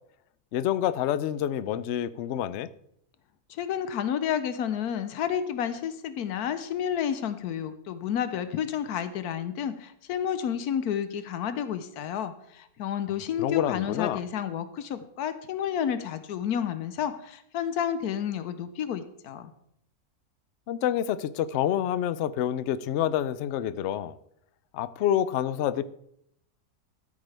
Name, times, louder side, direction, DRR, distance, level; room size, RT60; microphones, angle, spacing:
voice 1, 0.5-2.7 13.4-14.2 20.7-24.2 24.7-25.8, left 11 dB, 65° left, 15 dB, 0.7 m, -27 dB
voice 2, 3.5-19.5, left 9 dB, 90° left, 11 dB, 1.2 m, -30 dB
13.0 x 9.0 x 3.3 m, 0.72 s
omnidirectional pair, 1.6 m